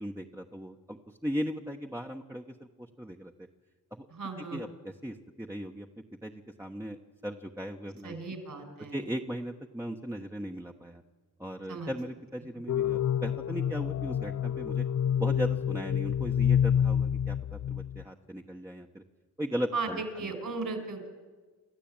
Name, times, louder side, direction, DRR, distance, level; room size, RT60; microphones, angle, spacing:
voice 1, 0.0-3.5 3.9-4.1 4.4-7.0 7.2-8.2 8.9-11.0 11.4-14.8 15.2-19.0 19.4-20.3, equal, 5° right, 1 dB, 1.2 m, -38 dB
voice 2, 4.2-4.6 8.0-9.0 11.7-11.9 19.7-21.1, right 3 dB, 60° right, 5 dB, 5.3 m, -36 dB
sound 1, 12.7-18.0, left 9 dB, 50° left, 0.6 m, -28 dB
28.0 x 13.5 x 8.9 m, 1.4 s
cardioid pair, 75°, 37 cm